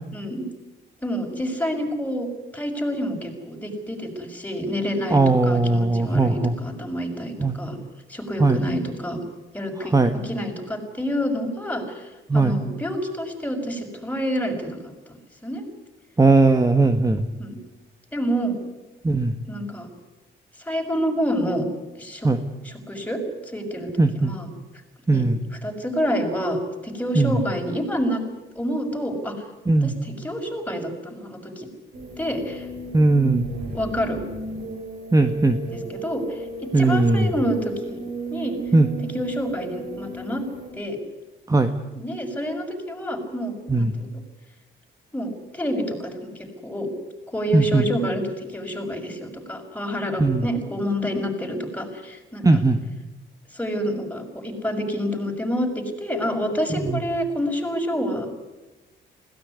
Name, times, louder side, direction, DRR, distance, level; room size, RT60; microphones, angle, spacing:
voice 1, 0.1-0.4 1.0-2.3 2.5-7.8 8.1-9.2 9.5-9.9 10.2-15.6 17.4-17.6 18.1-18.5 19.4-19.9 20.6-21.6 22.0-22.3 22.6-24.5 25.1-25.2 25.6-26.6 26.8-28.2 28.5-29.4 29.8-31.7 32.2-32.7 33.7-34.2 35.7-38.0 38.3-38.6 39.1-40.4 40.7-41.0 41.9-44.1 45.1-46.9 47.3-52.6 53.5-55.7 56.0-58.4, equal, 10° left, 2 dB, 6.4 m, -28 dB
voice 2, 5.1-6.5 7.4-7.5 8.4-8.6 9.9-10.1 12.3-12.6 16.2-17.2 19.0-19.3 22.2-22.4 24.0-24.3 25.1-25.4 27.1-27.4 29.7-30.0 32.9-33.5 35.1-35.6 36.7-37.3 38.7-38.9 41.5-41.7 43.7-43.9 47.5-47.8 50.2-50.4 52.4-52.8 56.9-57.0, right 3 dB, 15° right, 8 dB, 1.6 m, -18 dB
sound 1, 31.9-40.7, right 4 dB, 65° right, 5.4 m, -34 dB
21.5 x 17.5 x 9.8 m, 1.1 s
cardioid pair, 90°, 20 cm